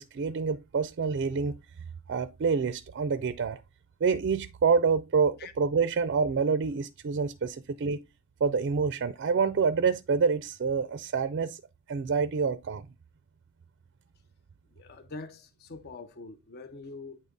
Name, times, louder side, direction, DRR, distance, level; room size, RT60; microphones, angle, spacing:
voice 1, 0.0-1.5 2.1-3.6 4.0-8.0 8.4-11.6 11.9-12.8, right 5 dB, 50° right, 0.4 m, -27 dB
voice 2, 14.8-17.2, left 3 dB, 45° left, 0.5 m, -44 dB
8.7 x 3.9 x 3.5 m
head